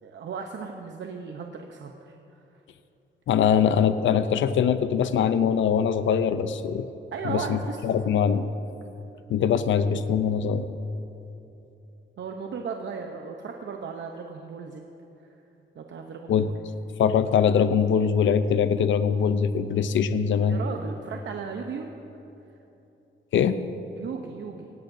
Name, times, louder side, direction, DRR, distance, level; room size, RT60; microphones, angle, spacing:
voice 1, 0.0-2.6 7.1-8.0 12.2-14.8 15.7-16.6 20.5-21.9 24.0-24.7, right 5 dB, 65° right, 3 dB, 0.8 m, -36 dB
voice 2, 3.3-6.9 7.2-8.5 9.3-10.7 16.3-16.5 17.0-20.6 23.3-23.6, left 7 dB, 75° left, 11 dB, 0.6 m, -22 dB
17.0 x 16.5 x 2.7 m, 3.0 s
cardioid pair, 115°, 20 cm